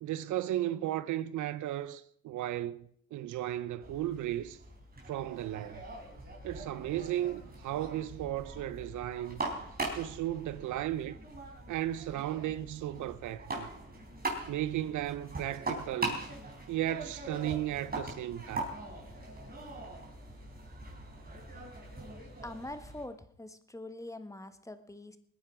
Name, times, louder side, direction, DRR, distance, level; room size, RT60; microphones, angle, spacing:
voice 1, 0.0-4.6 5.1-5.8 6.4-9.4 9.9-11.2 11.7-13.7 14.5-16.2 16.7-18.7, right 13 dB, 75° right, 0.7 m, -35 dB
sound 1, 3.8-23.0, right 2 dB, 30° right, 4.0 m, -42 dB
voice 2, 22.4-25.2, left 2 dB, 10° left, 1.3 m, -44 dB
20.5 x 9.4 x 5.0 m
cardioid pair, 90°, 30 cm